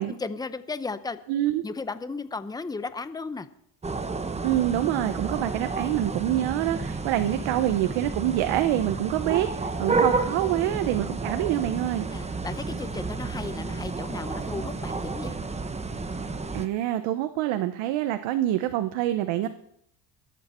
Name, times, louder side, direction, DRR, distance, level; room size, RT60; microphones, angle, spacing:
voice 1, 0.0-1.2 1.6-3.5 10.3-10.5 12.1-15.4, left 4 dB, 10° left, 12 dB, 0.7 m, -35 dB
voice 2, 1.3-1.6 4.4-12.1 16.5-19.5, right 13 dB, 80° right, 10 dB, 1.0 m, -26 dB
sound 1, 3.8-16.7, right 3 dB, 15° right, 1.0 m, -31 dB
22.5 x 8.5 x 4.4 m, 0.73 s
cardioid pair, 105°, 45 cm